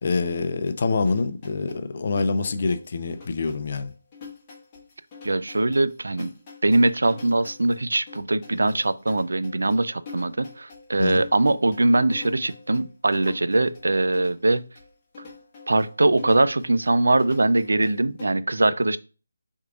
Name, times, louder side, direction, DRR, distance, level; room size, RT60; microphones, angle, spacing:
voice 1, 0.0-3.9 11.0-11.2, left 4 dB, 45° left, 0.5 m, -25 dB
sound 1, 0.7-18.3, left 5 dB, 25° left, 1.1 m, -45 dB
voice 2, 5.2-6.3 6.6-14.6 15.7-19.0, right 2 dB, 75° right, 0.3 m, -22 dB
4.6 x 3.6 x 2.3 m
figure-of-eight pair, 160°, 0 cm